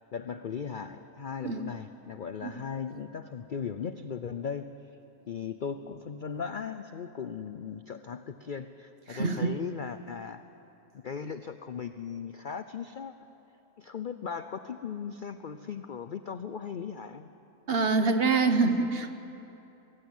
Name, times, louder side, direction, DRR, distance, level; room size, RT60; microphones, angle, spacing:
voice 1, 0.0-4.7 5.3-10.4 10.9-13.1 13.8-17.3, left 6 dB, 60° left, 10 dB, 0.5 m, -37 dB
voice 2, 9.1-9.5 17.7-19.1, right 4 dB, 45° right, 8 dB, 1.2 m, -25 dB
22.0 x 15.5 x 9.2 m, 2.9 s
omnidirectional pair, 1.6 m